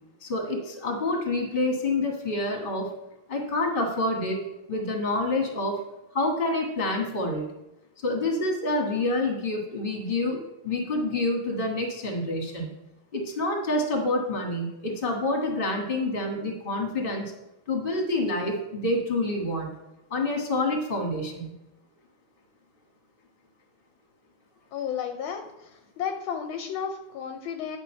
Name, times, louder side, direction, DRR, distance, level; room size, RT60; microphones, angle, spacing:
voice 1, 0.2-2.9 3.3-5.8 6.1-7.4 8.0-12.7 13.1-17.3 17.7-19.7 20.1-21.5, left 2 dB, 25° left, 1 dB, 1.6 m, -27 dB
voice 2, 24.7-25.7 26.0-27.8, left 7 dB, 75° left, 6 dB, 1.4 m, -32 dB
9.5 x 5.7 x 4.4 m, 0.93 s
omnidirectional pair, 2.4 m